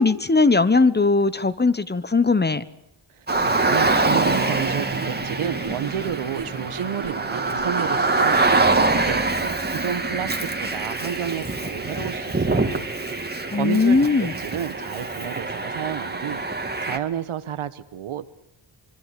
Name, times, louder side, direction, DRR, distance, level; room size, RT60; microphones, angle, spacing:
voice 1, 0.0-2.6 13.5-14.3, left 3 dB, 20° left, 15 dB, 1.1 m, -19 dB
voice 2, 3.1-12.9 13.5-16.4 16.8-18.3, right 9 dB, 85° right, 13 dB, 1.4 m, -31 dB
Car, 3.3-17.0, right 3 dB, 20° right, 2.2 m, -24 dB
sound 1, 3.3-8.8, right 5 dB, 60° right, 3.1 m, -36 dB
25.0 x 23.5 x 8.4 m, 0.79 s
cardioid pair, 95°, 49 cm